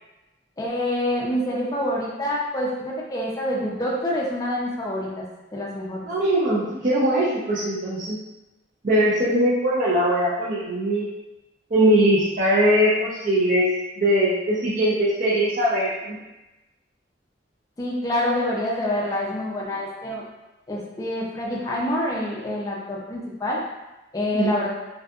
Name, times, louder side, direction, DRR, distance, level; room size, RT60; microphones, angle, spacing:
voice 1, 0.6-5.2 5.5-6.1 17.8-20.2 20.7-23.6 24.1-24.7, left 1 dB, 20° left, -4 dB, 0.4 m, -26 dB
voice 2, 6.0-8.2 8.8-11.1 11.7-13.7 14.0-16.2 24.3-24.6, right 1 dB, 50° right, -10 dB, 0.5 m, -21 dB
2.6 x 2.4 x 2.3 m, 1.0 s
head